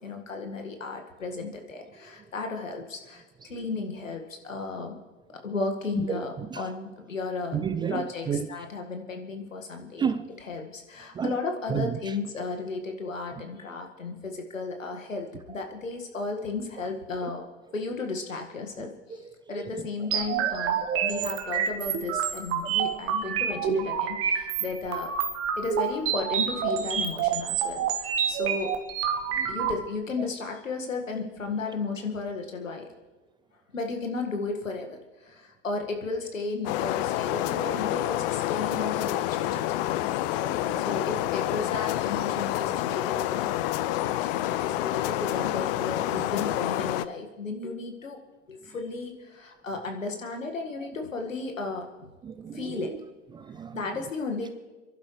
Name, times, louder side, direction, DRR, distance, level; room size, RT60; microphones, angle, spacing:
voice 1, 0.0-3.2 3.5-5.0 5.3-7.6 7.9-10.1 10.5-17.4 17.7-25.1 25.6-28.7 29.5-32.9 33.7-40.2 40.8-48.2 48.5-52.1 52.5-52.9 53.7-54.5, left 3 dB, 85° left, 4 dB, 2.0 m, -34 dB
voice 2, 6.1-6.6 7.5-8.5 10.0-10.3 11.1-11.4 11.7-12.1 19.1-19.9 20.1-21.6 22.1-22.3 22.9-23.0 29.3-29.6 30.2-30.3 40.2-40.9 50.8-50.9 52.2-53.0 53.3-53.8, right 7 dB, 15° right, 11 dB, 0.4 m, -33 dB
sound 1, 20.1-29.7, right 8 dB, 35° right, 1.4 m, -28 dB
sound 2, 36.6-47.0, left 15 dB, 45° left, 0.6 m, -28 dB
29.0 x 11.5 x 3.3 m, 1.2 s
figure-of-eight pair, 90°, 38 cm